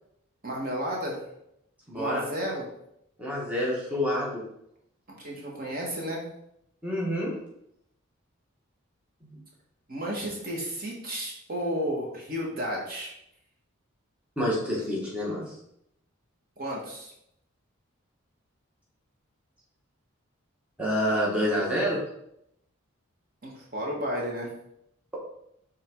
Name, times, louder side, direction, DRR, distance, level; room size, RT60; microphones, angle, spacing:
voice 1, 0.4-1.2 1.9-2.6 5.1-6.2 9.9-13.1 16.6-17.1 23.4-24.5, equal, 40° right, -2 dB, 1.4 m, -32 dB
voice 2, 1.9-2.2 3.2-4.4 6.8-7.3 9.2-9.3 14.4-15.6 20.8-22.0, equal, 5° right, -6 dB, 1.3 m, -28 dB
5.7 x 3.6 x 4.5 m, 0.77 s
head